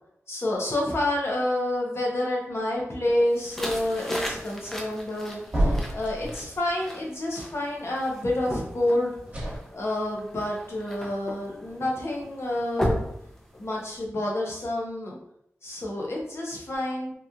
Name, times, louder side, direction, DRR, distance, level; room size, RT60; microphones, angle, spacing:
voice 1, 0.3-9.2 9.7-13.0 13.6-15.2 15.6-17.1, left 1 dB, 60° left, -3 dB, 0.8 m, -28 dB
sound 1, 3.3-14.0, equal, 10° left, 0.6 m, -36 dB
sound 2, 5.5-6.4 9.3-9.6, right 1 dB, 30° right, 1.3 m, -26 dB
2.9 x 2.5 x 2.4 m, 0.76 s
wide cardioid pair, 55°, 5 cm